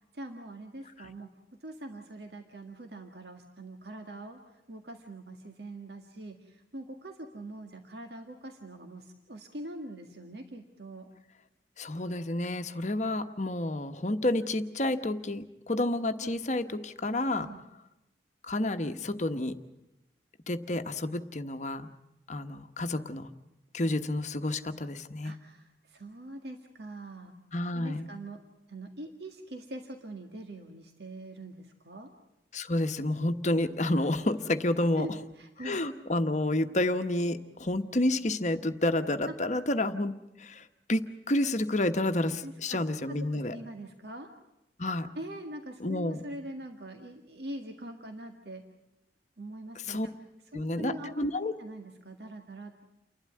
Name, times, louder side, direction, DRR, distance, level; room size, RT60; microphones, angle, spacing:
voice 1, 0.1-1.3 1.6-11.1 16.2-16.3 17.4-17.6 25.2-27.3 27.7-28.4 28.7-32.1 35.0-35.8 39.3-39.4 42.3-42.8 43.1-44.3 45.2-48.6 49.4-50.1 50.5-51.3 51.6-52.8, right 1 dB, 65° right, 4 dB, 1.9 m, -43 dB
voice 2, 11.8-17.5 18.4-19.6 20.5-21.9 22.3-23.3 23.7-25.3 27.5-28.1 32.5-35.1 35.6-40.1 40.4-43.5 44.8-45.1 45.8-46.2 49.9-50.1 50.5-51.5, left 1 dB, 40° left, 8 dB, 1.1 m, -30 dB
29.5 x 12.0 x 9.4 m, 0.92 s
head